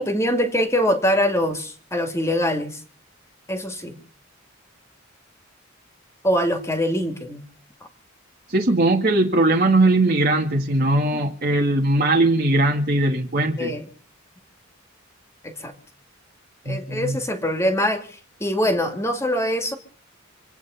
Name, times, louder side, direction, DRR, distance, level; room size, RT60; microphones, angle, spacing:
voice 1, 0.0-2.8 3.5-4.0 6.2-7.5 13.6-13.8 15.4-15.7 16.6-19.8, equal, 15° left, 6 dB, 2.1 m, -23 dB
voice 2, 8.5-13.7 16.7-17.2, right 2 dB, 45° right, 0 dB, 1.8 m, -20 dB
26.5 x 9.2 x 5.6 m, 0.43 s
head